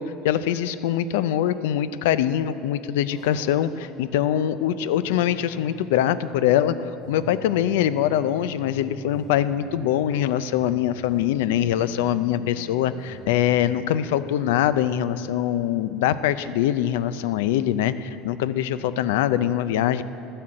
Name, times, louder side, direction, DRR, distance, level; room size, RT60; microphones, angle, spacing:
voice 1, 0.0-20.0, left 11 dB, 85° left, 14 dB, 0.5 m, -23 dB
sound 1, 3.1-16.8 17.1-18.3, left 2 dB, 20° left, 1.4 m, -45 dB
12.0 x 9.9 x 7.6 m, 2.8 s
cardioid pair, 175°, 0 cm